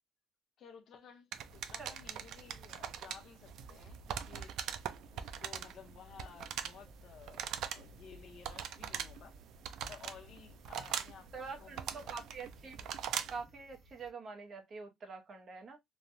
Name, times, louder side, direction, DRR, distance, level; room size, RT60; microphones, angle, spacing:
voice 1, 0.6-4.6 5.1-9.3 9.9-12.2, left 7 dB, 55° left, 0.7 m, -55 dB
sound 1, 1.3-13.5, right 9 dB, 70° right, 0.4 m, -42 dB
sound 2, 6.1-14.1, right 2 dB, 55° right, 1.4 m, -60 dB
voice 2, 11.3-12.9 13.3-15.8, right 4 dB, 40° right, 0.8 m, -46 dB
3.1 x 2.2 x 2.5 m
cardioid pair, 135°, 0 cm